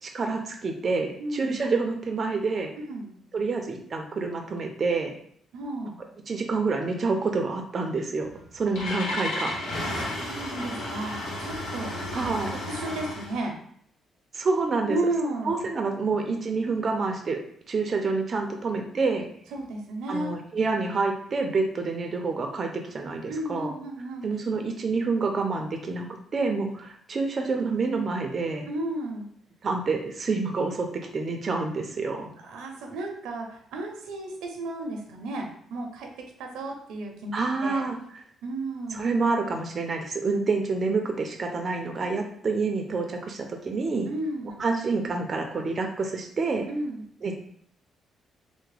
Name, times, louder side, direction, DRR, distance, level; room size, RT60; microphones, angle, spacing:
voice 1, 0.0-2.7 3.3-5.1 6.3-9.6 12.1-12.5 14.3-15.0 15.5-17.4 17.7-19.3 20.1-23.7 24.2-26.1 26.3-28.7 29.6-30.9 31.1-32.3 37.3-38.0 38.9-44.1 44.6-46.7 47.2-47.3, right 4 dB, 40° right, 3 dB, 0.5 m, -27 dB
voice 2, 1.2-1.6 2.9-3.1 5.5-5.9 10.0-12.3 12.7-13.5 14.9-15.7 19.5-20.4 23.3-24.2 28.7-29.3 32.4-36.1 36.4-37.3 37.6-37.8 38.4-39.0 44.1-44.6 46.7-47.0, right 2 dB, 90° right, 2 dB, 0.6 m, -33 dB
Engine starting, 8.3-13.4, left 1 dB, 80° left, 1.0 m, -33 dB
3.4 x 2.1 x 3.3 m, 0.64 s
cardioid pair, 90°, 0 cm